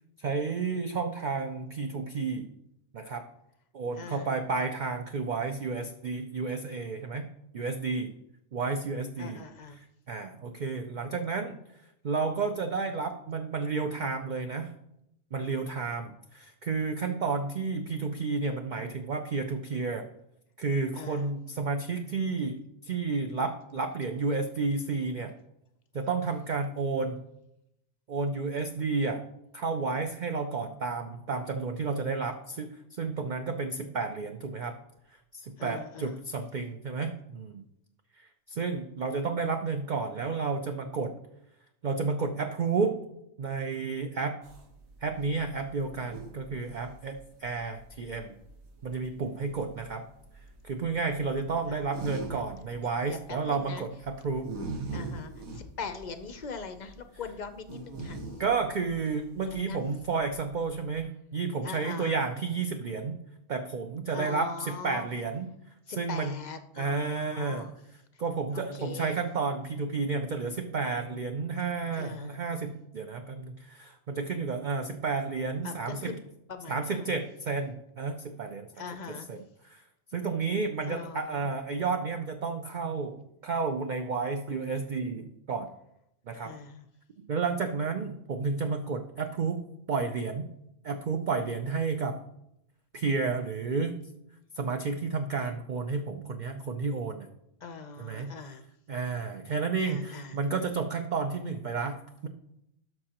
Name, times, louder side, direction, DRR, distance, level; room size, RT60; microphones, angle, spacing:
voice 1, 0.2-2.5 2.9-3.2 3.7-7.3 7.5-8.1 8.5-9.4 10.1-11.6 12.0-14.7 15.3-20.1 20.6-25.3 25.9-27.2 28.1-29.2 29.5-34.8 35.3-37.6 38.2-41.2 41.8-43.0 43.4-44.4 45.0-48.3 48.8-50.0 50.6-54.6 55.1-55.2 58.4-63.2 63.5-65.5 66.0-66.3 66.8-67.7 68.2-76.1 76.7-78.7 79.3-79.8 80.1-85.7 86.3-86.5 87.3-89.6 89.9-90.5 90.8-92.3 92.9-94.0 94.5-97.3 98.0-98.3 98.9-102.3, right 4 dB, 55° right, 5 dB, 0.5 m, -31 dB
voice 2, 4.0-4.3 9.2-9.8 20.9-21.3 35.6-36.2 51.7-51.9 53.0-53.9 54.9-58.3 59.5-59.8 61.6-62.2 64.1-65.1 65.9-67.7 68.1-68.2 68.5-69.2 71.9-72.4 75.6-76.2 76.5-77.1 78.8-79.3 80.9-81.5 86.3-86.9 97.6-98.6 99.8-100.4, left 5 dB, 50° left, 9 dB, 0.5 m, -41 dB
sound 1, 44.4-61.0, right 3 dB, 80° right, 1.6 m, -43 dB
12.5 x 6.1 x 2.9 m, 0.80 s
omnidirectional pair, 1.4 m